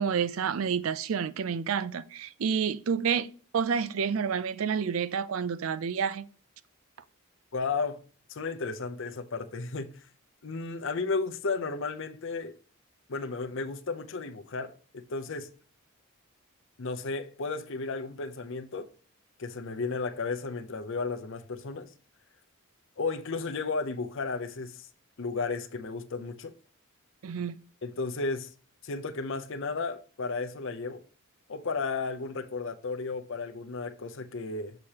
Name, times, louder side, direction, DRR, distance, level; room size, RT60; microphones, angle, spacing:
voice 1, 0.0-3.3 3.5-6.2 27.2-27.6, right 6 dB, 70° right, 0.4 m, -29 dB
voice 2, 7.5-8.0 8.3-9.9 10.4-12.6 13.1-15.5 16.8-18.9 19.4-21.9 23.0-24.9 25.2-26.5 27.8-28.5 28.8-31.0 31.5-34.8, left 4 dB, 60° left, 0.7 m, -33 dB
6.6 x 5.9 x 2.9 m
head